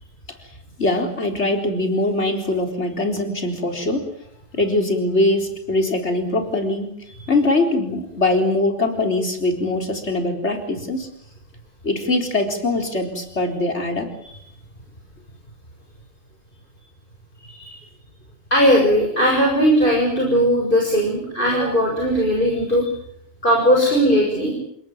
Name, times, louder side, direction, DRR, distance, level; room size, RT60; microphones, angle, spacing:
voice 1, 0.8-4.1 4.5-6.9 7.3-11.1 11.8-14.1 21.6-21.7, left 2 dB, 85° left, 4 dB, 4.4 m, -22 dB
voice 2, 18.5-22.9 23.4-24.5, equal, 50° left, -1 dB, 6.7 m, -18 dB
29.0 x 18.0 x 9.3 m, 0.71 s
omnidirectional pair, 1.1 m